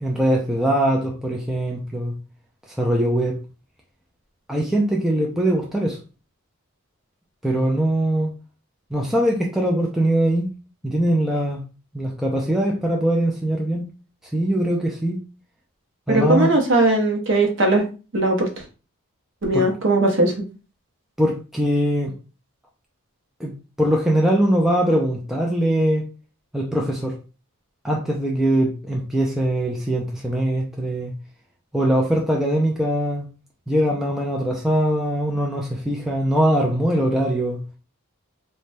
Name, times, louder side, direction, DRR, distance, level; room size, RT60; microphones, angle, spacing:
voice 1, 0.0-2.2 2.7-3.4 4.5-6.0 7.4-8.3 8.9-10.5 10.8-11.6 11.9-13.9 14.3-15.2 16.1-16.5 19.5-19.7 21.2-22.1 23.4-26.1 26.5-27.2 27.8-31.1 31.7-33.3 33.7-37.6, right 1 dB, ahead, 0.3 m, -21 dB
voice 2, 16.1-17.8 18.1-18.5 19.4-20.3, right 2 dB, 55° right, 0.7 m, -18 dB
3.1 x 2.2 x 2.5 m
head